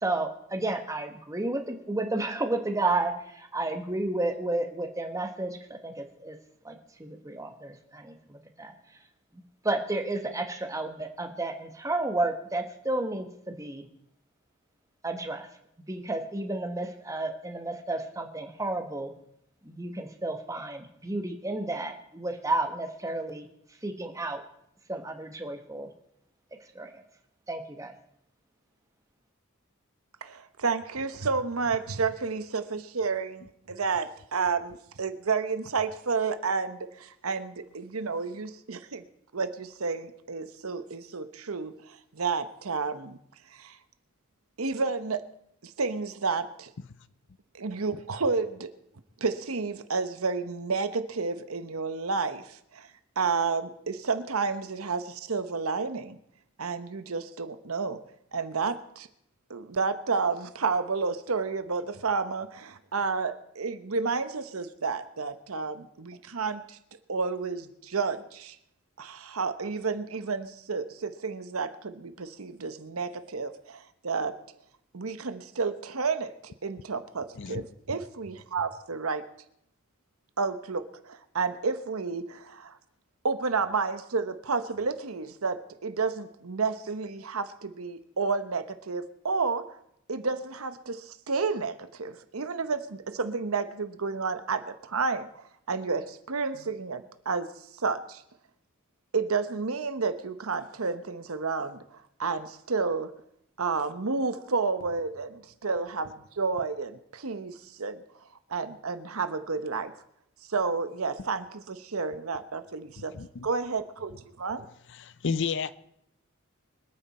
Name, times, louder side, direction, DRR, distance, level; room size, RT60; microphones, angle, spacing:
voice 1, 0.0-5.6 5.8-6.3 6.6-8.7 9.6-13.8 15.0-15.5 15.9-19.1 19.6-23.5 23.8-24.4 24.9-25.9 26.7-27.0 27.5-27.9, right 2 dB, 15° right, 5 dB, 1.4 m, -32 dB
voice 2, 30.2-39.0 39.3-43.2 43.5-43.8 44.6-45.2 45.6-46.7 47.5-48.7 49.2-52.9 53.2-56.2 56.6-58.0 58.3-59.1 59.5-66.8 67.1-68.6 69.0-74.4 74.9-79.2 80.4-82.8 83.2-89.7 90.1-97.5 97.7-98.2 99.1-103.1 103.6-108.0 108.5-109.9 110.5-113.1 113.4-114.1 114.4-114.7, right 4 dB, 90° right, 11 dB, 1.0 m, -31 dB
voice 3, 113.1-113.5 114.9-115.8, left 5 dB, 60° left, 16 dB, 0.6 m, -31 dB
25.0 x 9.2 x 4.3 m, 0.75 s
head